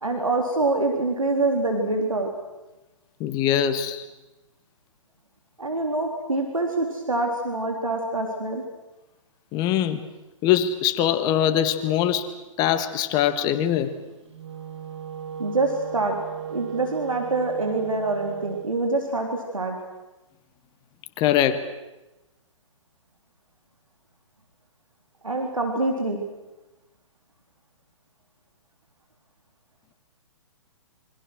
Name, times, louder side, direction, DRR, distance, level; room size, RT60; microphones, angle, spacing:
voice 1, 0.0-2.3 5.6-8.6 15.4-16.2 16.5-19.8 25.2-26.2, right 2 dB, 80° right, 2 dB, 3.7 m, -25 dB
voice 2, 3.2-4.1 9.5-10.0 10.4-12.3 12.6-13.9 21.2-21.6, left 10 dB, 25° left, 10 dB, 1.7 m, -22 dB
Wind instrument woodwind instrument, 14.2-18.8, right 9 dB, 55° right, 2.5 m, -35 dB
27.5 x 25.0 x 6.4 m, 1.0 s
figure-of-eight pair, 125°, 17 cm